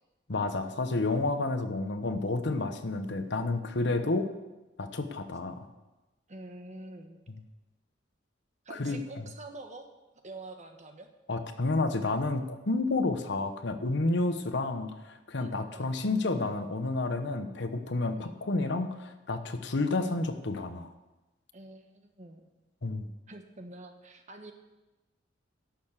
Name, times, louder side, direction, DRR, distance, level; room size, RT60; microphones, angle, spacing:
voice 1, 0.3-4.3 4.8-5.7 8.7-9.0 11.3-20.9 22.8-23.1, left 2 dB, 65° left, 8 dB, 1.0 m, -30 dB
voice 2, 6.3-7.2 8.6-9.9 10.2-11.1 14.4-14.5 15.4-15.9 18.1-18.4 21.5-22.4 23.3-24.5, right 2 dB, 40° right, 5 dB, 1.4 m, -46 dB
11.5 x 6.8 x 8.2 m, 1.1 s
head